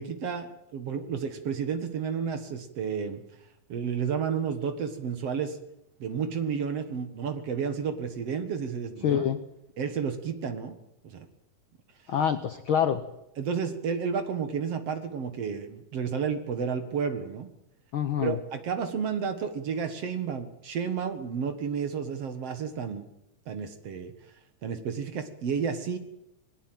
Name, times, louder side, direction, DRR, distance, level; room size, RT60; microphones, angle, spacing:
voice 1, 0.0-3.2 3.7-5.6 6.0-9.2 9.8-10.8 11.0-11.3 13.4-17.5 18.2-23.0 23.5-24.1 24.6-26.0, right 6 dB, 55° right, 8 dB, 2.4 m, -31 dB
voice 2, 9.0-9.4 12.1-13.0 17.9-18.4, left 8 dB, 85° left, 10 dB, 1.1 m, -26 dB
21.0 x 18.0 x 9.1 m, 0.84 s
omnidirectional pair, 3.8 m